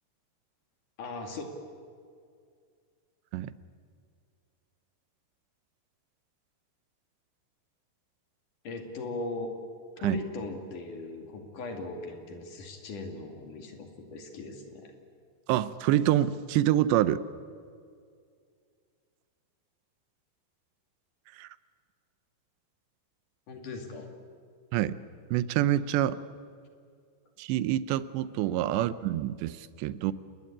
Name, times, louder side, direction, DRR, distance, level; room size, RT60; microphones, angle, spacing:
voice 1, 1.0-1.5 8.6-9.5 10.0-14.9 23.5-24.1 28.7-28.9, left 3 dB, 50° left, 4 dB, 3.6 m, -39 dB
voice 2, 15.5-17.2 21.4-21.5 24.7-24.9 25.3-26.2 27.4-30.1, right 13 dB, 85° right, 15 dB, 3.0 m, -26 dB
28.0 x 21.0 x 8.7 m, 2.2 s
omnidirectional pair, 4.9 m